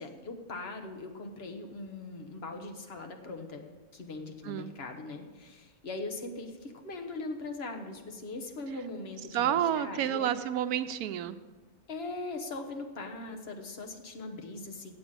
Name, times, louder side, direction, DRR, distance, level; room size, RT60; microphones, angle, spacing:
voice 1, 0.0-3.6 3.9-10.3 11.9-14.9, left 2 dB, 45° left, 5 dB, 1.3 m, -40 dB
voice 2, 9.3-11.4, right 10 dB, 85° right, 11 dB, 1.1 m, -30 dB
8.0 x 7.5 x 8.7 m, 1.3 s
omnidirectional pair, 1.6 m